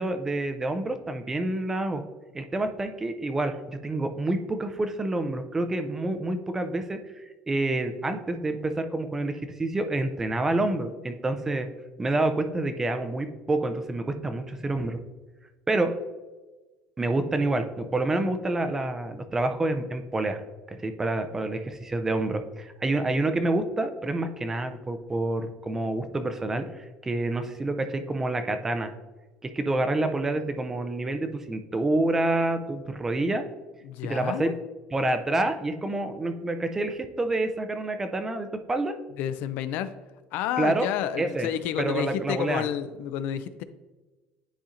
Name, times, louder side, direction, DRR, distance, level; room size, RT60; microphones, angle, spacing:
voice 1, 0.0-2.0 2.3-7.0 7.5-11.7 12.0-15.0 15.7-15.9 17.0-20.4 20.7-28.9 29.4-33.4 34.0-34.5 34.9-38.9 40.6-40.9 41.2-41.5 41.8-42.6, right 2 dB, 10° right, 8 dB, 0.4 m, -28 dB
voice 2, 33.8-34.6 39.2-39.9 40.3-43.6, left 10 dB, 60° left, 13 dB, 0.3 m, -30 dB
10.0 x 4.2 x 2.5 m, 1.2 s
cardioid pair, 170°, 3 cm